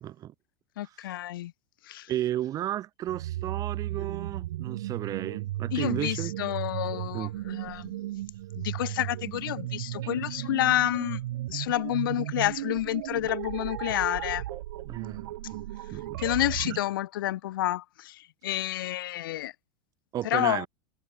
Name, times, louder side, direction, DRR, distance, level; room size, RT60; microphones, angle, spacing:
voice 1, 0.0-0.3 2.1-6.3 7.1-7.3 10.0-10.1 14.5-16.3 20.1-20.7, right 12 dB, 30° right, 1.1 m, -34 dB
voice 2, 0.8-1.5 1.9-2.1 5.7-7.9 8.5-11.2 11.5-14.4 16.2-19.5 20.2-20.7, left 15 dB, 90° left, 0.4 m, -29 dB
sound 1, 3.1-16.8, right 14 dB, 80° right, 1.5 m, -35 dB
supercardioid pair, 135°, 11 cm